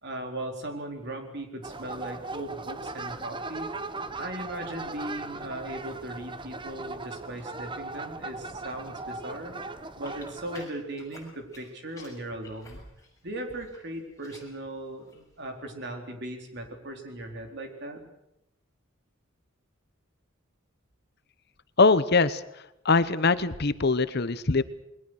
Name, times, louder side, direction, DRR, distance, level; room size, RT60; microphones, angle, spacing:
voice 1, 0.0-3.7 4.1-9.6 10.0-12.8 13.2-18.0, right 1 dB, 55° right, 4 dB, 4.1 m, -38 dB
sound 1, 1.6-10.7, right 3 dB, 25° right, 1.0 m, -38 dB
sound 2, 10.0-11.7 11.9-13.8 14.1-14.6 15.0-15.3, left 3 dB, 15° left, 6.8 m, -51 dB
voice 2, 21.8-22.4 22.8-24.6, left 3 dB, 50° left, 14 dB, 0.9 m, -22 dB
29.0 x 21.5 x 6.5 m, 0.81 s
head